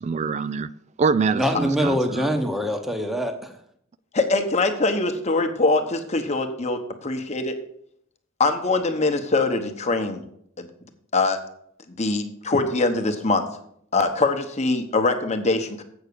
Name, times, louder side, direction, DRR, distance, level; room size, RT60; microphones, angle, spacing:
voice 1, 0.0-0.7 1.0-2.3, right 5 dB, 35° right, 0.3 m, -24 dB
voice 2, 1.3-3.5, equal, ahead, 0.9 m, -24 dB
voice 3, 4.1-7.5 8.4-10.2 10.6-10.7 11.1-11.4 12.0-13.4 13.9-15.8, left 3 dB, 35° left, 1.0 m, -23 dB
8.1 x 6.0 x 6.8 m
head